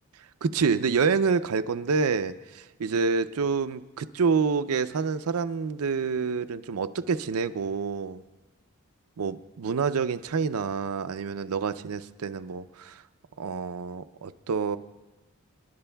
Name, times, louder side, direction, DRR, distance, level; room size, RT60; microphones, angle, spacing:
voice 1, 0.4-8.2 9.2-13.0 13.4-14.8, right 5 dB, 85° right, 12 dB, 0.5 m, -27 dB
27.5 x 11.0 x 2.3 m, 1.2 s
head